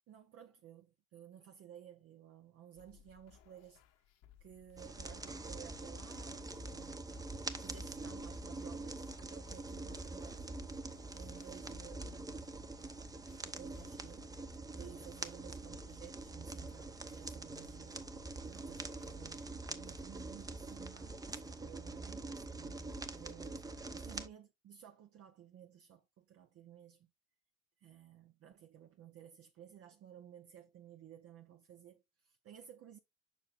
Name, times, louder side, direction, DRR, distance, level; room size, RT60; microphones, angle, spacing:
voice 1, 0.1-3.8 4.4-7.1 7.6-10.5 11.1-12.5 13.4-14.3 14.7-18.0 18.5-27.1 27.8-33.0, right 10 dB, 40° right, 0.8 m, -56 dB
sound 1, 2.8-20.5, left 10 dB, 60° left, 1.4 m, -64 dB
sound 2, 4.8-24.3, right 2 dB, 10° right, 0.8 m, -45 dB
7.1 x 5.8 x 2.5 m
hypercardioid pair, 70°, 36 cm